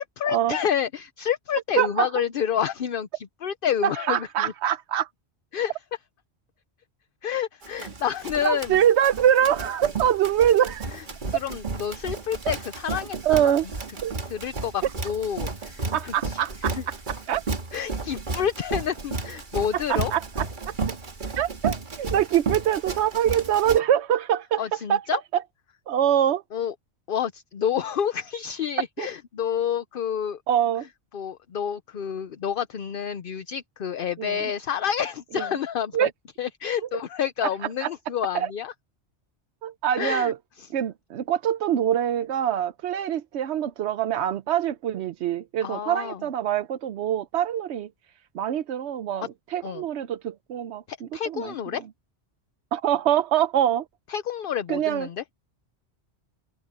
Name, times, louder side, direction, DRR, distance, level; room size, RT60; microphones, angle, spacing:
voice 1, 0.0-4.5 5.5-5.7 7.2-8.8 10.9-13.5 14.3-16.8 17.7-20.1 24.6-25.2 26.5-26.7 27.1-30.4 31.1-36.1 36.4-38.7 40.0-40.3 45.6-46.2 49.6-49.8 50.9-51.8 54.1-55.2, left 8 dB, 60° left, 0.8 m, -29 dB
voice 2, 1.8-2.1 3.8-5.1 8.4-10.9 13.2-13.7 14.0-14.1 15.9-16.9 17.3-17.4 19.9-20.7 21.4-24.6 24.9-25.4 25.9-26.4 29.0-29.1 30.5-30.9 34.2-34.4 35.3-35.4 35.9-36.1 37.4-37.5 37.8-37.9 38.3-38.5 39.6-40.4 40.7-47.9 48.3-51.5 52.7-53.8 54.7-55.1, right 10 dB, 90° right, 0.9 m, -24 dB
Run, 7.6-23.8, right 4 dB, 50° right, 1.7 m, -33 dB
omnidirectional pair, 1.1 m